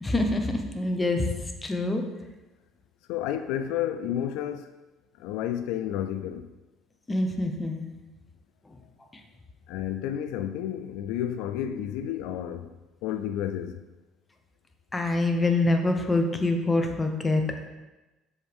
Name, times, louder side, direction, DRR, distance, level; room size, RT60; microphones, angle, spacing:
voice 1, 0.0-2.0 7.1-7.8 14.9-17.4, left 2 dB, 15° left, 0.8 m, -25 dB
voice 2, 3.1-4.7 5.2-6.5 9.7-12.7 13.0-13.8, left 10 dB, 80° left, 0.3 m, -31 dB
7.2 x 4.7 x 3.5 m
cardioid pair, 110°, 0 cm